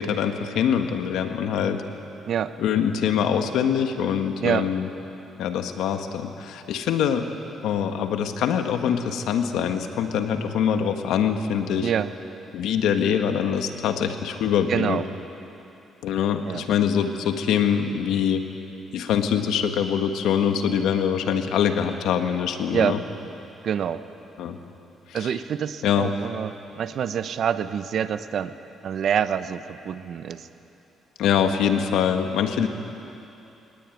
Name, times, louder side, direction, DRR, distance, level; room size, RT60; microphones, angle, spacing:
voice 1, 0.0-1.8 2.6-4.9 5.4-7.3 7.6-11.9 12.5-15.0 16.0-18.5 18.9-23.0 24.4-24.6 25.1-25.3 25.8-26.2 31.2-32.7, left 8 dB, 85° left, 6 dB, 1.6 m, -24 dB
voice 2, 14.7-15.0 16.5-16.6 22.7-23.0 23.6-24.0 25.1-28.5 28.8-30.5, right 8 dB, 60° right, 12 dB, 1.0 m, -26 dB
22.5 x 19.5 x 9.3 m, 2.9 s
cardioid pair, 95°, 0 cm